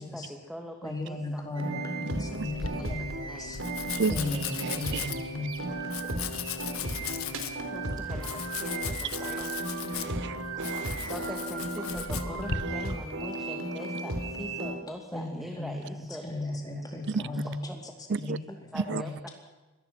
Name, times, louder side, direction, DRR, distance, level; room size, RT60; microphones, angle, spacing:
voice 1, 0.0-1.5 2.3-3.6 6.8-9.5 11.1-17.6 18.1-18.2 18.5-19.3, equal, ahead, 2.0 m, -43 dB
voice 2, 0.8-3.6 4.1-5.7 15.1-15.7 16.1-19.3, left 2 dB, 20° left, 4.2 m, -36 dB
sound 1, 1.6-14.8, right 2 dB, 70° right, 4.0 m, -35 dB
voice 3, 2.1-2.5 3.9-4.2 4.6-5.1 9.9-11.1 17.1-17.2 18.1-18.4 18.7-19.0, right 4 dB, 55° right, 0.6 m, -32 dB
Domestic sounds home sounds, 2.4-12.6, left 8 dB, 80° left, 1.7 m, -38 dB
Liquid, 5.6-6.2 6.5-14.5, right 1 dB, 20° right, 4.0 m, -52 dB
24.5 x 19.5 x 6.0 m
head